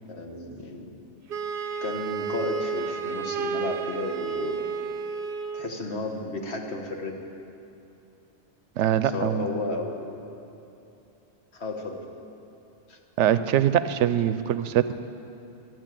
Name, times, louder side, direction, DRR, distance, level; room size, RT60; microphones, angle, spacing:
voice 1, 0.1-0.9 1.8-4.6 5.5-7.1 9.1-10.2 11.5-12.0 12.9-13.0, left 2 dB, 65° left, 2 dB, 1.6 m, -33 dB
Wind instrument woodwind instrument, 1.3-5.7, right 5 dB, 55° right, 0.8 m, -31 dB
voice 2, 8.8-9.5 13.2-14.9, right 10 dB, 85° right, 13 dB, 0.9 m, -23 dB
12.0 x 9.0 x 9.0 m, 2.8 s
omnidirectional pair, 1.2 m